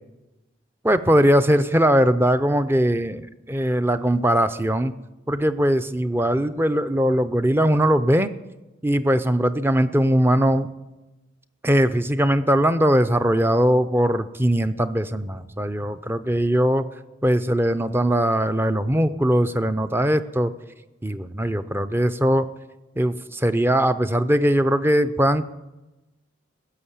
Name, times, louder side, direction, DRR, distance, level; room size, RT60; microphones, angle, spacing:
voice 1, 0.8-4.9 5.3-8.3 8.8-10.7 11.6-16.8 17.2-20.5 21.0-22.5 23.0-25.4, equal, 10° right, 11 dB, 0.5 m, -20 dB
16.0 x 7.3 x 9.9 m, 1.1 s
head